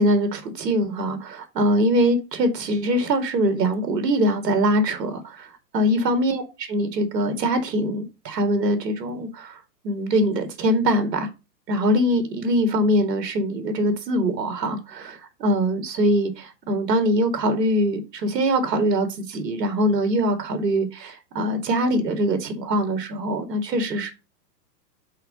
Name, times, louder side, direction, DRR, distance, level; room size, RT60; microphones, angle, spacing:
voice 1, 0.0-5.5 5.7-9.6 9.8-11.3 11.7-24.1, equal, 75° right, 2.6 m, -23 dB
5.7 x 5.0 x 5.4 m
hypercardioid pair, 145°, 50 cm